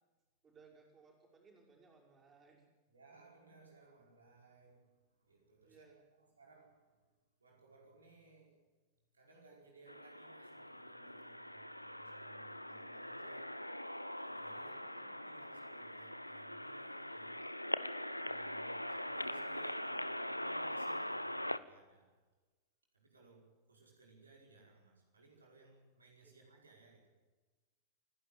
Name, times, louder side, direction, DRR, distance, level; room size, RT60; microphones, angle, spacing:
voice 1, 0.4-2.6 5.6-6.0 14.6-15.1 26.2-26.5, right 4 dB, 20° right, 0 dB, 6.0 m, -64 dB
voice 2, 2.9-7.1 7.4-8.6 9.1-13.6 14.2-17.5 18.2-22.2 22.9-27.1, right 3 dB, 75° right, 0 dB, 5.0 m, -62 dB
sound 1, 9.9-21.6, left 1 dB, 90° left, 0.7 m, -42 dB
29.0 x 11.0 x 9.1 m, 1.3 s
figure-of-eight pair, 90°, 0 cm